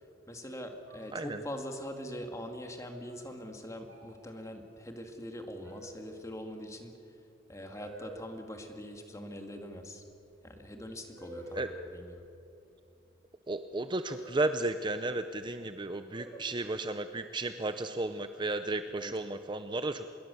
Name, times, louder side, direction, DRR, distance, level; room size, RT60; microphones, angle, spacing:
voice 1, 0.3-6.9 7.5-10.0 10.4-12.2 18.9-19.1, equal, 15° left, 4 dB, 2.2 m, -43 dB
sound 1, 0.9-1.7 3.0-3.4 3.9-4.2 5.6-6.3 7.7-8.3 10.3-10.4 11.1-12.1 14.1-15.2 16.1-16.8 18.0-18.6, equal, 80° right, 5.8 m, -49 dB
voice 2, 13.5-20.1, right 2 dB, 25° right, 9 dB, 0.7 m, -33 dB
26.0 x 21.5 x 7.0 m, 2.8 s
head